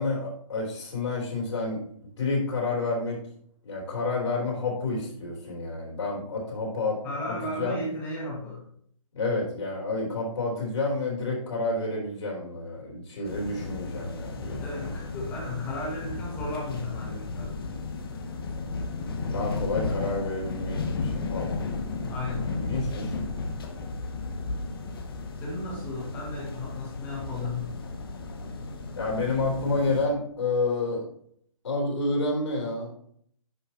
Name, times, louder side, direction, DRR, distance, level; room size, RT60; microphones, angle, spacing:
voice 1, 0.0-1.8 2.2-3.2 3.6-7.0 7.3-7.8 9.1-14.6 19.3-21.5 22.2-23.1 29.0-31.1 31.6-32.9, left 3 dB, 60° left, -2 dB, 3.5 m, -29 dB
voice 2, 7.0-8.6 14.6-17.7 22.1-22.6 25.3-27.7, left 2 dB, 10° left, -3 dB, 1.7 m, -34 dB
sound 1, 13.2-30.1, left 3 dB, 40° left, 0.9 m, -34 dB
10.5 x 5.4 x 2.9 m, 0.63 s
hypercardioid pair, 175°, 18 cm